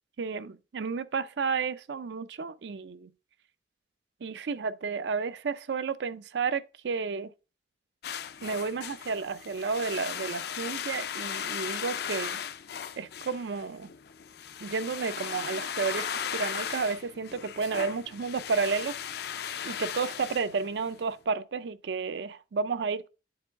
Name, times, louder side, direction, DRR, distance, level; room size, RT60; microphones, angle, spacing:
voice 1, 0.2-3.1 4.2-7.3 8.4-12.4 13.0-13.9 14.6-18.9 19.6-23.1, right 5 dB, 75° right, 0.4 m, -32 dB
sound 1, 8.0-21.1, left 8 dB, 60° left, 0.5 m, -37 dB
8.6 x 3.8 x 3.4 m
head